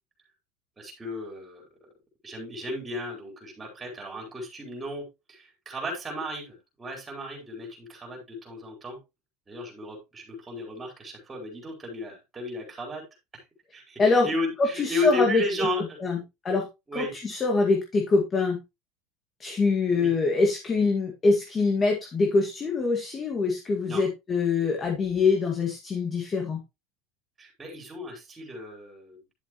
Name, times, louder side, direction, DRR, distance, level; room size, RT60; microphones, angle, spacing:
voice 1, 0.8-1.6 2.2-9.0 9.5-13.0 13.3-13.4 13.7-16.0 16.9-17.1 19.9-20.1 23.9-24.0 27.4-29.3, left 2 dB, 15° right, 0 dB, 4.6 m, -34 dB
voice 2, 14.6-15.4 16.0-16.7 16.9-18.6 19.4-26.6, left 3 dB, 20° left, 2 dB, 2.0 m, -24 dB
11.0 x 7.2 x 3.1 m, 0.24 s
supercardioid pair, 145°, 0 cm